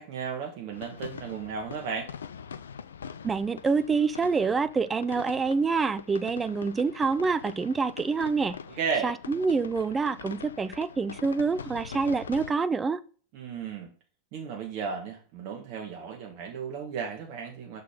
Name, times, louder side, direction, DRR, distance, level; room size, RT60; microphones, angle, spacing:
voice 1, 0.0-2.1 8.8-9.1 13.3-13.9 14.3-17.8, right 6 dB, 45° right, 1.4 m, -34 dB
sound 1, 0.7-12.5, left 7 dB, 70° left, 0.4 m, -43 dB
voice 2, 3.2-8.6 9.0-13.0, right 4 dB, 15° right, 0.5 m, -26 dB
6.4 x 4.1 x 5.3 m
figure-of-eight pair, 90°, 0 cm